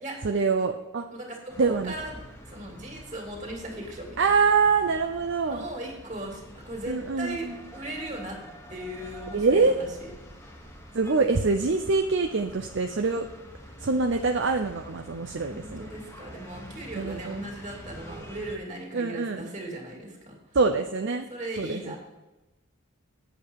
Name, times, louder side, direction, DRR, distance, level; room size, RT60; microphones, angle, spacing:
voice 1, 0.2-1.0 1.6-1.9 4.2-5.6 6.9-7.3 9.3-9.8 10.9-13.2 13.8-15.9 17.0-17.4 18.9-19.4 20.5-21.3 21.6-21.9, right 4 dB, 55° right, 5 dB, 0.6 m, -24 dB
voice 2, 1.1-4.3 5.5-8.4 8.7-10.1 15.5-20.4 21.3-22.0, right 1 dB, 35° right, 0 dB, 2.7 m, -38 dB
sound 1, 1.5-18.6, equal, 10° left, 1.3 m, -46 dB
8.7 x 8.0 x 4.7 m, 1.1 s
head